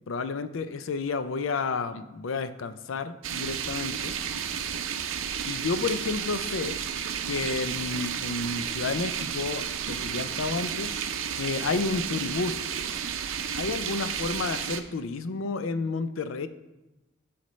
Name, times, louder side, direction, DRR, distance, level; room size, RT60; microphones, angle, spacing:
voice 1, 0.1-4.1 5.5-6.8 7.3-10.9 11.4-12.6 13.5-16.5, left 4 dB, 85° left, 11 dB, 0.5 m, -31 dB
sound 1, 3.2-14.8, right 8 dB, 90° right, 0.5 m, -32 dB
12.5 x 4.3 x 3.2 m, 1.0 s
head